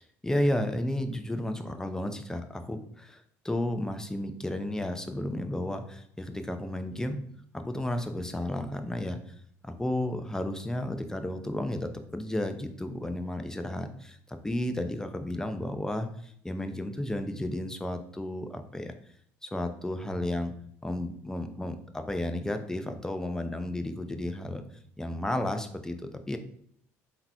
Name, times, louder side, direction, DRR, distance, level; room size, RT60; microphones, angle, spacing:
voice 1, 0.2-7.2 7.5-9.4 9.6-18.9 19.4-20.5 20.8-24.6 25.0-26.4, left 1 dB, 10° left, 8 dB, 0.6 m, -33 dB
3.8 x 2.9 x 4.5 m, 0.65 s
supercardioid pair, 75°, 7 cm